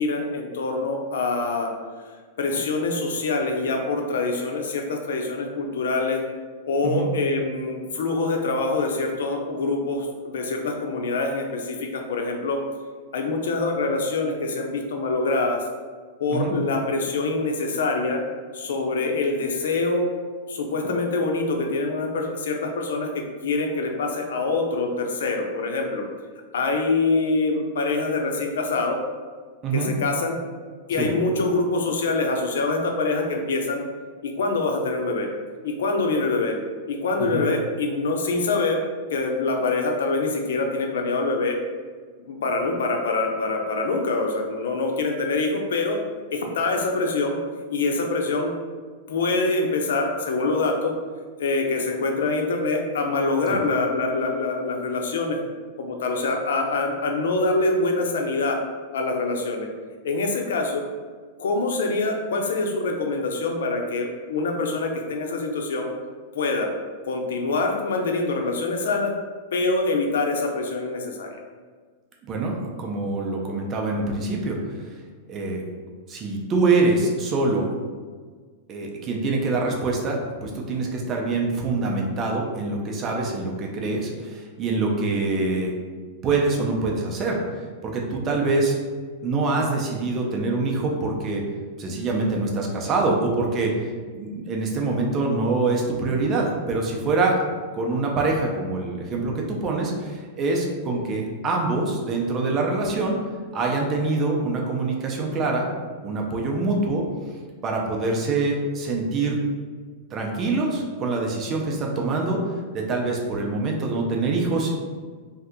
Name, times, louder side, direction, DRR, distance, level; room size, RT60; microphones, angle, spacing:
voice 1, 0.0-1.7 2.4-6.2 6.7-12.6 13.1-15.6 16.2-18.2 18.5-20.1 20.5-23.1 23.4-26.0 26.5-29.0 29.7-30.4 30.9-33.8 34.2-35.3 35.6-36.6 36.9-38.8 39.1-41.6 42.2-46.0 46.3-47.4 47.7-48.5 49.1-50.9 51.4-55.4 55.8-58.6 58.9-59.7 60.0-60.8 61.4-65.9 66.3-66.7 67.0-69.1 69.5-71.3, left 3 dB, 90° left, 2 dB, 0.5 m, -25 dB
voice 2, 72.3-74.6 75.3-75.6 76.1-77.7 78.7-85.7 86.2-87.4 87.8-88.8 89.2-91.4 91.8-97.4 97.7-103.2 103.5-105.7 106.0-107.0 107.6-109.4 110.1-112.4 112.7-114.7, right 3 dB, 25° right, 0 dB, 0.6 m, -25 dB
2.7 x 2.4 x 3.5 m, 1.5 s
supercardioid pair, 150°, 0 cm